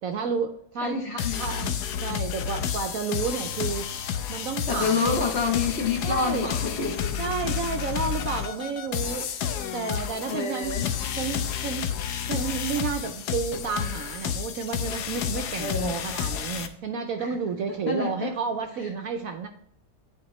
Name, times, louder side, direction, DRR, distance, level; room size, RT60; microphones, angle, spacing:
voice 1, 0.0-1.8 2.0-3.9 4.3-5.0 6.0-6.6 7.2-9.3 9.7-10.8 11.2-11.9 12.3-19.5, right 5 dB, 65° right, 5 dB, 0.9 m, -31 dB
voice 2, 0.8-1.4 4.7-7.1 10.3-10.9 15.6-16.0 17.2-17.4 17.9-18.3, left 4 dB, 45° left, 1 dB, 1.1 m, -28 dB
sound 1, 1.2-16.7, left 8 dB, 75° left, 1.2 m, -30 dB
9.9 x 4.2 x 3.1 m, 0.71 s
omnidirectional pair, 1.9 m